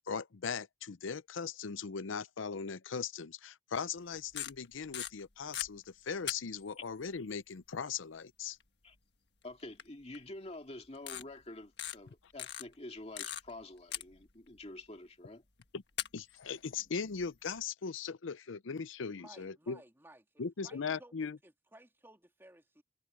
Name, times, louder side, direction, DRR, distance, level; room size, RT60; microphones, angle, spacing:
voice 1, 0.1-8.6 15.7-15.8 16.1-19.8 20.4-21.4, left 5 dB, 85° left, 0.6 m, -39 dB
sound 1, 4.1-5.7 6.3-6.9 8.6-8.7 9.8-9.9 10.1-10.2 11.0-11.2 11.8-12.0 12.4-13.6 13.9-14.6 15.6-15.7 16.0-17.6, left 11 dB, 55° left, 1.6 m, -40 dB
voice 2, 9.4-15.4, left 2 dB, 30° left, 2.2 m, -48 dB
voice 3, 19.1-22.8, right 1 dB, 10° right, 3.0 m, -58 dB
head